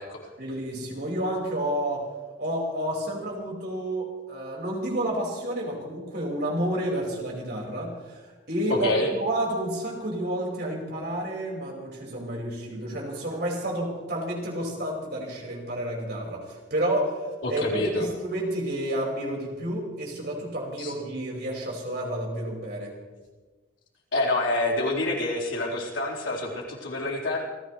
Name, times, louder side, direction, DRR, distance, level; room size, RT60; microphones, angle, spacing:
voice 1, 0.4-2.1 2.4-23.0, right 1 dB, 55° right, -2 dB, 5.2 m, -30 dB
voice 2, 8.7-9.1 17.4-18.1 20.8-20.9 24.1-27.4, left 2 dB, 80° left, -3 dB, 4.3 m, -27 dB
28.5 x 15.5 x 3.2 m, 1.3 s
head